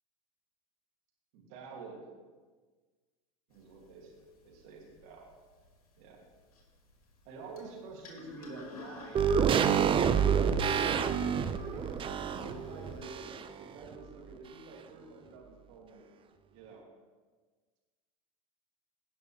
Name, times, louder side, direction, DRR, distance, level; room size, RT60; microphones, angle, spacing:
voice 1, 1.3-2.1 3.5-5.3 6.0-6.2 7.2-9.7 10.5-13.3 13.6-16.0 16.5-16.9, right 3 dB, 65° right, -2 dB, 2.6 m, -49 dB
sound 1, 3.5-13.1, left 5 dB, 85° left, 2.0 m, -52 dB
sound 2, 9.2-13.6 13.9-14.0, right 7 dB, 30° right, 0.6 m, -28 dB
17.0 x 6.1 x 3.4 m, 1.4 s
hypercardioid pair, 90°, 18 cm